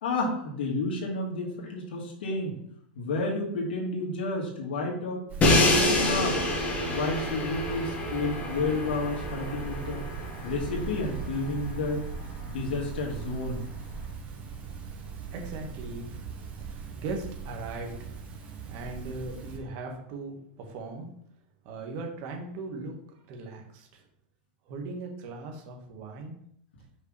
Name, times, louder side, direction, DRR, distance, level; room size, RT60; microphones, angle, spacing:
voice 1, 0.0-2.5 3.0-5.2 5.6-6.4 6.9-10.0 10.4-12.0 12.5-13.6, left 2 dB, 80° left, -1 dB, 2.2 m, -31 dB
sound 1, 5.3-19.6, right 5 dB, 30° right, 2.4 m, -39 dB
Crash cymbal, 5.4-11.4, left 1 dB, 25° left, 1.7 m, -27 dB
voice 2, 15.3-16.3 16.6-18.3 18.7-21.1 21.7-22.9 23.3-24.0 24.7-26.3, right 3 dB, 50° right, 2 dB, 1.8 m, -39 dB
5.9 x 5.6 x 3.5 m, 0.69 s
hypercardioid pair, 115°, 5 cm